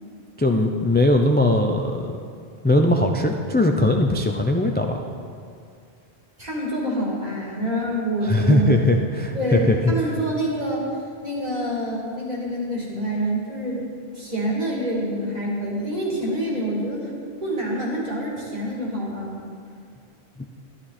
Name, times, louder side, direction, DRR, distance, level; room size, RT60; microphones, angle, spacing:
voice 1, 0.4-2.1 2.6-5.0 8.2-9.8, left 1 dB, 15° left, 3 dB, 0.4 m, -20 dB
voice 2, 6.4-8.8 9.3-10.9 11.2-13.8 14.1-17.1 17.4-19.4, right 1 dB, 40° right, -5 dB, 2.9 m, -26 dB
12.0 x 11.5 x 4.3 m, 2.2 s
omnidirectional pair, 1.0 m